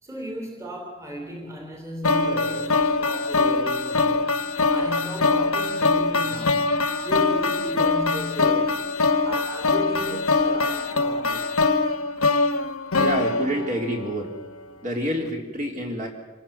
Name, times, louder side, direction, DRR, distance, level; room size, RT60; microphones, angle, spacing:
voice 1, 0.0-4.4 4.7-9.0 9.2-11.5, equal, 15° right, 3.1 m, -35 dB
sound 1, 2.0-14.2, left 3 dB, 85° left, 1.3 m, -23 dB
voice 2, 13.0-14.3 14.8-16.1, equal, 35° right, 3.8 m, -27 dB
27.0 x 19.0 x 7.3 m
head